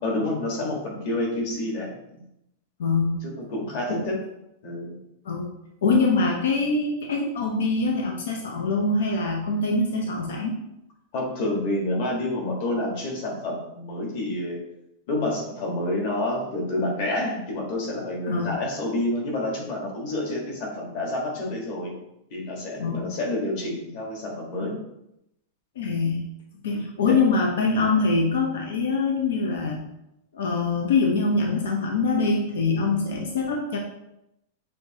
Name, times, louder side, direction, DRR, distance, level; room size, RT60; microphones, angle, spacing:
voice 1, 0.0-2.2 3.2-4.2 4.6-4.9 11.1-14.6 15.1-21.9 22.3-24.8 26.7-27.2, left 1 dB, 40° left, -2 dB, 1.3 m, -28 dB
voice 2, 2.8-3.1 3.9-4.0 5.2-5.5 5.8-10.6 18.3-18.6 22.8-23.1 25.8-26.2 26.6-29.8 30.3-33.8, left 3 dB, 85° left, 1 dB, 0.7 m, -24 dB
6.4 x 2.8 x 2.8 m, 0.85 s
supercardioid pair, 175°, 0 cm